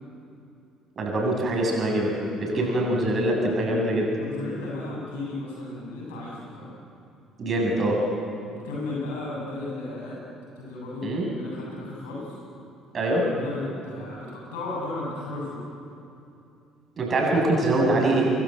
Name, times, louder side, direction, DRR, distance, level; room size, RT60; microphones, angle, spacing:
voice 1, 1.0-4.1 7.4-8.0 11.0-11.3 12.9-13.2 17.0-18.3, right 1 dB, 40° right, -1 dB, 7.7 m, -24 dB
voice 2, 2.4-2.8 4.1-6.7 8.5-10.2 10.6-12.4 13.4-15.7 17.2-17.5, left 2 dB, 75° left, -3 dB, 7.9 m, -35 dB
27.5 x 22.0 x 8.0 m, 2.7 s
figure-of-eight pair, 55°, 0 cm